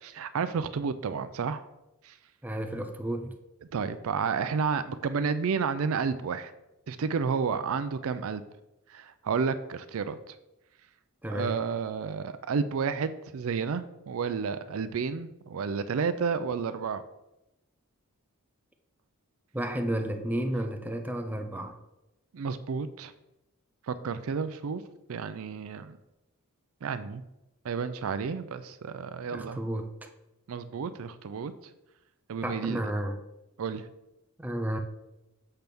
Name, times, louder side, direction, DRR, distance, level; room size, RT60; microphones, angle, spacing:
voice 1, 0.0-1.6 2.0-2.1 3.7-6.5 6.9-8.4 8.9-10.4 11.3-17.0 22.3-23.1 23.9-24.8 25.1-26.0 26.8-27.2 27.6-29.6 30.5-31.5 32.3-32.8 33.6-33.9, right 5 dB, 65° right, 0.4 m, -31 dB
voice 2, 2.4-3.3 11.2-11.6 19.5-21.8 29.3-30.1 32.4-33.2 34.4-34.8, right 1 dB, 10° right, 0.5 m, -32 dB
6.7 x 3.5 x 5.9 m
head